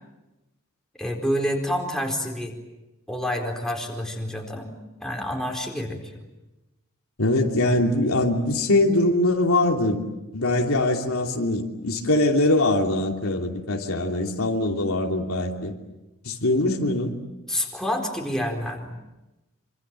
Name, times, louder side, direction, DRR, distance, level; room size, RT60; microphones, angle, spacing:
voice 1, 1.0-2.5 3.1-4.7 5.0-6.0 17.5-19.0, equal, 5° left, 0 dB, 4.3 m, -28 dB
voice 2, 7.2-10.0 10.3-15.7 16.2-17.2, left 2 dB, 75° left, 1 dB, 3.0 m, -22 dB
26.5 x 26.5 x 7.5 m, 1.0 s
head